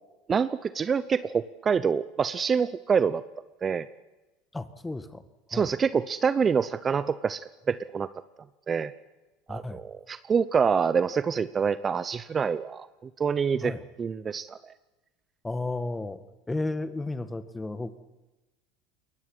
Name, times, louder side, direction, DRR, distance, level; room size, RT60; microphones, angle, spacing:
voice 1, 0.3-3.2 3.6-3.9 5.5-8.1 8.7-8.9 9.5-14.6, right 6 dB, 30° right, 16 dB, 0.8 m, -26 dB
voice 2, 4.5-5.2 5.5-5.7 9.5-9.8 13.6-13.8 15.4-18.0, left 2 dB, 10° left, 12 dB, 1.8 m, -33 dB
21.5 x 18.5 x 10.0 m, 1.1 s
hypercardioid pair, 85°, 0 cm